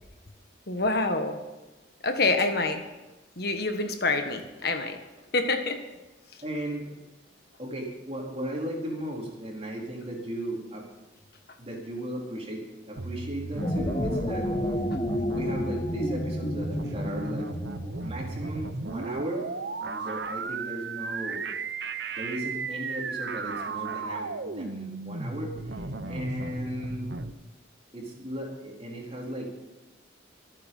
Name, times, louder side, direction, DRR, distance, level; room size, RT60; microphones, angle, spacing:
voice 1, 0.7-1.4 2.0-2.8 3.4-5.0 5.3-5.8, left 3 dB, 55° left, 6 dB, 1.5 m, -26 dB
voice 2, 6.4-7.0 7.6-10.9 11.6-14.5 15.3-17.5 18.0-21.4 22.2-27.1 27.9-29.7, right 1 dB, 30° right, -1 dB, 4.0 m, -36 dB
sound 1, 13.0-27.3, right 3 dB, 60° right, 0.9 m, -35 dB
sound 2, 13.4-18.0, left 1 dB, 25° left, 0.9 m, -30 dB
24.5 x 8.8 x 5.6 m, 1.1 s
head